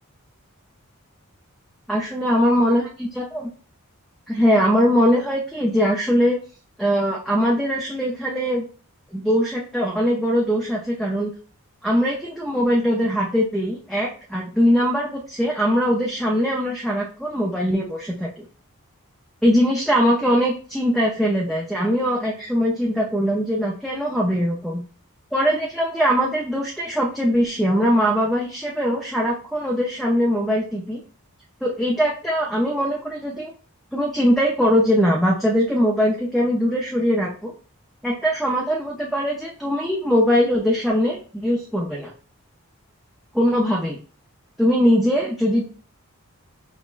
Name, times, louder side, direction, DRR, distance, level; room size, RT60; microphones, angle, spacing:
voice 1, 1.9-3.5 4.3-6.4 6.8-8.7 9.1-11.3 11.8-18.4 19.4-24.8 25.3-31.0 31.6-33.5 33.9-37.5 38.0-42.1 43.3-44.0 44.6-45.7, equal, ahead, -2 dB, 0.3 m, -21 dB
5.3 x 2.0 x 2.4 m, 0.40 s
head